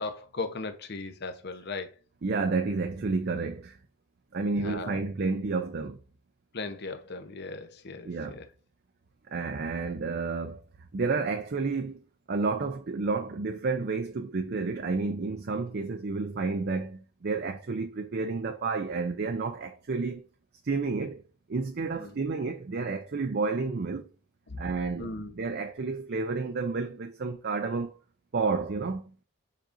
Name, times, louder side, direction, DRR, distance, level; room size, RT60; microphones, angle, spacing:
voice 1, 0.0-1.9 4.6-5.0 6.5-8.4 22.0-22.1 24.5-24.7 25.0-25.3, left 3 dB, 50° left, 0.8 m, -37 dB
voice 2, 2.2-3.8 4.3-6.0 8.0-8.4 9.3-10.6 10.9-20.2 20.6-21.2 21.5-24.1 24.6-27.9 28.3-29.1, right 4 dB, 45° right, 0.5 m, -30 dB
7.4 x 5.1 x 2.6 m
head